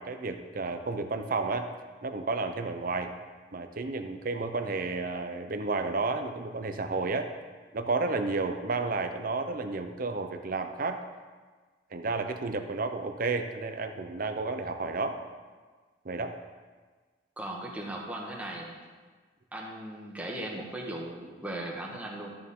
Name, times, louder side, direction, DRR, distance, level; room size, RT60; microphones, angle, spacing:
voice 1, 0.0-1.7 2.0-3.1 3.5-7.3 7.7-11.0 11.9-15.2 16.0-16.3, right 3 dB, 50° right, 7 dB, 0.7 m, -31 dB
voice 2, 17.4-18.8 19.5-22.3, right 1 dB, 10° right, -2 dB, 1.4 m, -38 dB
13.0 x 6.8 x 3.7 m, 1.4 s
head